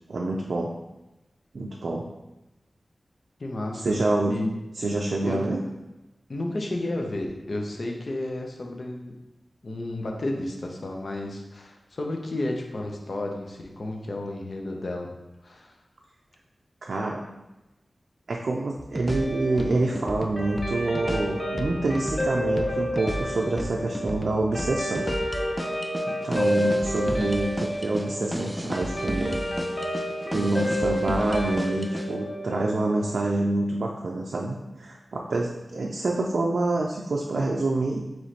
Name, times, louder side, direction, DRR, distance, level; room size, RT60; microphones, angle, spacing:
voice 1, 0.1-0.7 1.5-2.0 3.8-4.4 4.8-5.6 16.8-17.2 18.3-25.1 26.1-29.4 30.3-38.0, right 2 dB, 80° right, -1 dB, 0.4 m, -27 dB
voice 2, 3.4-3.9 4.3-4.5 5.2-5.5 6.3-9.1 9.6-15.1 15.4-15.8, left 1 dB, 60° left, 1 dB, 0.6 m, -32 dB
sound 1, 18.8-32.1, equal, 5° right, 0.3 m, -34 dB
Guitar, 19.1-33.7, equal, 25° left, 0.8 m, -30 dB
3.1 x 3.0 x 4.1 m, 0.99 s
wide cardioid pair, 95°, 0 cm